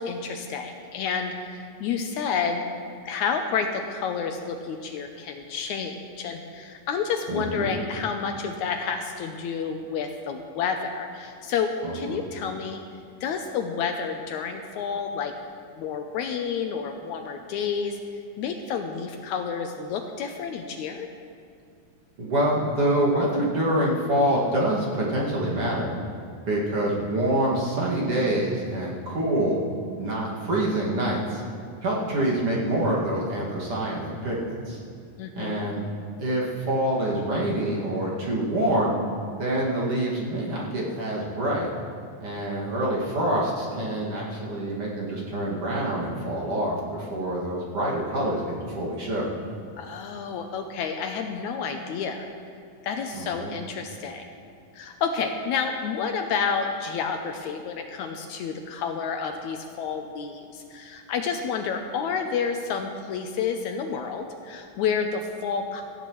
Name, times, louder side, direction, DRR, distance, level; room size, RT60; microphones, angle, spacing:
voice 1, 0.0-2.6 3.0-12.8 13.2-15.3 15.7-18.0 18.4-21.1 35.2-35.7 49.8-52.3 52.8-54.2 54.7-65.8, left 6 dB, 75° left, 4 dB, 1.9 m, -30 dB
voice 2, 7.3-7.7 11.8-12.2 22.2-25.9 26.5-29.6 30.0-31.4 31.8-34.8 35.3-35.8 36.2-39.0 39.4-41.7 42.2-49.3 53.1-53.5, right 1 dB, 50° right, -5 dB, 2.7 m, -26 dB
17.5 x 14.0 x 3.1 m, 2.3 s
omnidirectional pair, 3.7 m